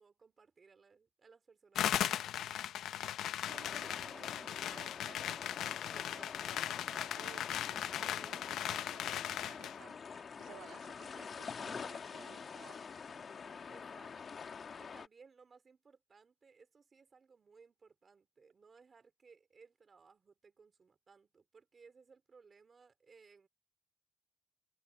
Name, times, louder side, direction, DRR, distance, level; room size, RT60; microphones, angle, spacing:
voice 1, 0.0-2.6 8.0-8.5 13.3-14.4 14.7-23.5, right 5 dB, 30° right, 4.0 m, -62 dB
sound 1, 1.8-9.8, left 11 dB, 75° left, 0.7 m, -38 dB
voice 2, 3.3-12.9, right 12 dB, 85° right, 2.5 m, -58 dB
sound 2, 3.5-15.1, left 6 dB, 35° left, 1.2 m, -47 dB
cardioid pair, 150°, 0 cm